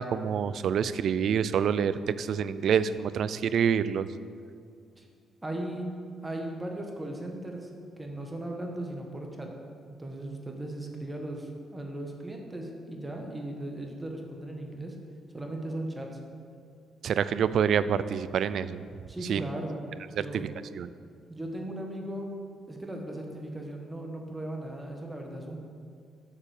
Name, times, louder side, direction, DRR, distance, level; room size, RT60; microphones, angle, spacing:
voice 1, 0.0-4.1 17.0-18.8 19.3-19.5 20.2-20.9, right 7 dB, 65° right, 15 dB, 0.4 m, -27 dB
voice 2, 5.4-5.9 6.2-7.7 8.0-9.5 10.0-14.9 15.3-16.2 19.1-19.8 20.1-20.4 21.3-22.3 22.7-25.6, right 1 dB, 15° right, 1 dB, 1.4 m, -37 dB
7.2 x 6.7 x 7.2 m, 2.2 s
cardioid pair, 90°, 0 cm